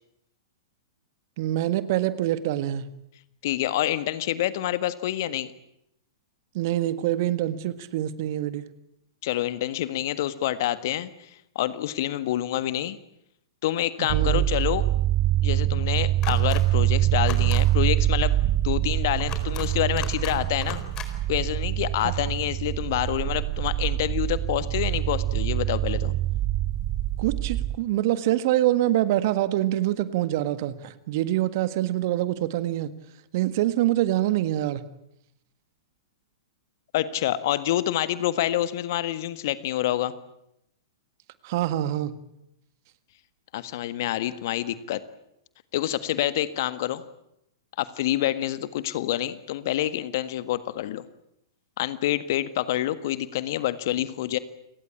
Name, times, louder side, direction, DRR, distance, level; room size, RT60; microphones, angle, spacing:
voice 1, 1.4-2.9 6.5-8.6 14.0-14.4 22.0-22.1 27.2-32.9 33.3-34.8 41.4-42.1, right 14 dB, 50° right, 13 dB, 1.7 m, -25 dB
voice 2, 3.4-5.5 9.2-11.3 11.5-13.0 13.6-14.9 15.4-18.4 18.6-20.8 21.3-26.1 36.9-40.1 43.5-45.0 45.7-47.0 47.8-51.0 51.8-54.4, left 13 dB, 55° left, 14 dB, 1.6 m, -27 dB
sound 1, 14.1-27.8, right 13 dB, 35° right, 1.2 m, -25 dB
sound 2, 16.2-16.6 17.2-17.6 19.2-19.7 20.0-20.4 20.6-21.1, left 9 dB, 30° left, 4.4 m, -37 dB
29.5 x 18.5 x 8.5 m, 0.81 s
figure-of-eight pair, 105°, 2 cm